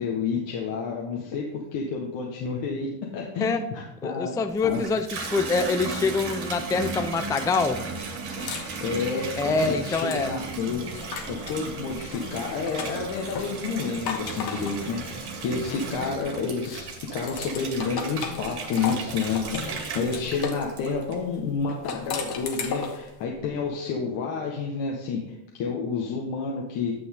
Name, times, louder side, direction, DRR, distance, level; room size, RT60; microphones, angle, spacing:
voice 1, 0.0-1.4 1.7-4.3 4.6-4.8 8.5-10.8 11.3-16.8 17.1-25.2 25.5-26.9, left 5 dB, 70° left, -1 dB, 1.5 m, -30 dB
voice 2, 4.0-7.8 9.4-10.3, left 4 dB, 10° left, 8 dB, 0.4 m, -25 dB
Water tap faucet / Bathtub (filling or washing), 4.5-21.4 21.9-22.5, right 4 dB, 55° right, 2.2 m, -36 dB
sound 1, 8.0-11.6 12.1-16.2 16.6-20.7 21.7-23.1, left 5 dB, 50° left, 1.5 m, -37 dB
9.3 x 6.2 x 3.7 m, 0.88 s
supercardioid pair, 95°, 47 cm